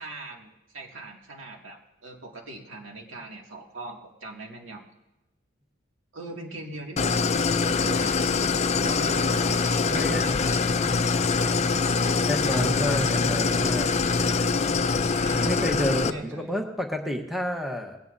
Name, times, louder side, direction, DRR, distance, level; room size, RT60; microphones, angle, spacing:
voice 1, 0.0-4.8 6.1-7.1 7.8-10.7 15.0-16.5, right 1 dB, 70° right, 0 dB, 2.4 m, -41 dB
Idling, 7.0-16.1, left 4 dB, 35° left, 0.5 m, -24 dB
voice 2, 9.9-10.2 12.3-13.9 15.4-18.0, equal, ahead, 2 dB, 1.1 m, -30 dB
20.0 x 17.0 x 2.7 m, 0.97 s
head